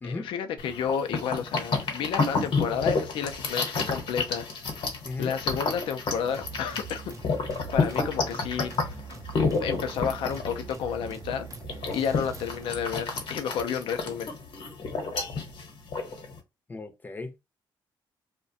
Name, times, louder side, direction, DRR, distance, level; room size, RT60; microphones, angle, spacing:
voice 1, 0.0-4.5 5.2-7.0 7.7-8.9 9.6-11.5 11.9-14.3, left 7 dB, 90° left, 0.4 m, -31 dB
sound 1, 0.6-16.4, left 4 dB, 75° left, 0.9 m, -30 dB
sound 2, 6.3-13.0, right 6 dB, 40° right, 0.4 m, -43 dB
voice 2, 16.7-17.4, left 3 dB, 20° left, 0.5 m, -36 dB
2.4 x 2.1 x 2.6 m
cardioid pair, 115°, 9 cm